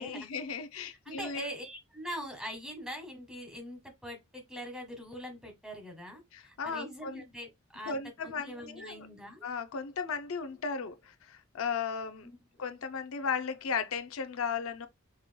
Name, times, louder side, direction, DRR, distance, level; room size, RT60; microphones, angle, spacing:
voice 1, 0.0-1.5 6.3-7.2 7.8-9.1 9.4-12.3 12.6-14.9, left 5 dB, 80° left, 0.5 m, -36 dB
voice 2, 1.0-9.4 12.2-12.4, equal, 5° right, 1.4 m, -43 dB
5.4 x 3.0 x 2.2 m
head